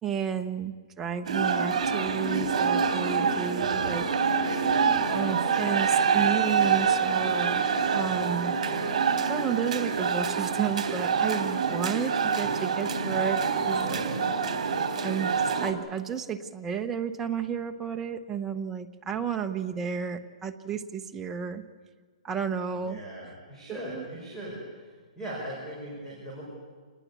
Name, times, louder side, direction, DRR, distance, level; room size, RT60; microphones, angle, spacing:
voice 1, 0.0-4.1 5.1-7.7 7.9-8.6 9.3-14.0 15.0-21.6 22.2-23.0 23.7-24.0, right 7 dB, 10° right, 5 dB, 0.9 m, -32 dB
sound 1, 1.2-15.7, right 6 dB, 60° right, 3.5 m, -26 dB
voice 2, 22.8-24.7 25.2-26.4, right 1 dB, 10° left, -5 dB, 5.5 m, -39 dB
27.0 x 20.5 x 8.4 m, 1.5 s
hypercardioid pair, 170°, 4 cm